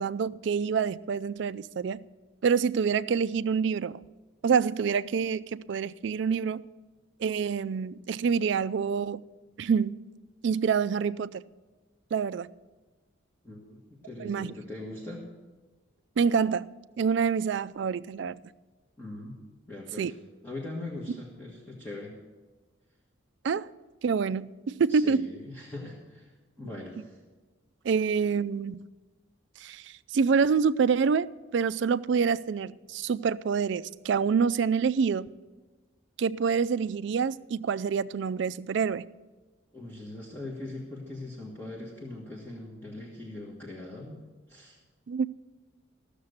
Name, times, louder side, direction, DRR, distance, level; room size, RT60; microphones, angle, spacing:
voice 1, 0.0-2.1 2.4-4.0 4.4-6.6 7.2-9.2 9.6-10.0 10.4-11.4 12.1-12.5 14.2-14.5 16.2-16.7 17.0-18.4 20.0-20.1 23.4-23.7 24.0-24.5 24.8-25.2 27.8-28.8 29.6-35.3 36.2-39.1 45.1-45.3, right 6 dB, 60° right, 0.3 m, -27 dB
voice 2, 13.4-15.2 19.0-20.1 20.4-22.1 24.9-26.3 26.6-27.2 39.7-44.2 44.5-44.8, left 2 dB, 10° left, 1.5 m, -41 dB
14.0 x 6.7 x 8.0 m
head